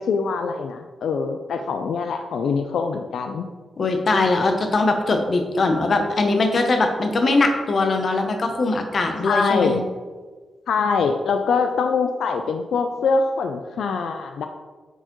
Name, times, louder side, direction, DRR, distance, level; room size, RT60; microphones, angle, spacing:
voice 1, 0.0-3.5 9.2-9.8 10.7-14.5, left 5 dB, 85° left, 6 dB, 0.4 m, -23 dB
voice 2, 3.8-9.8, left 3 dB, 40° left, 5 dB, 0.7 m, -21 dB
7.9 x 4.6 x 3.0 m, 1.4 s
wide cardioid pair, 175°, 0 cm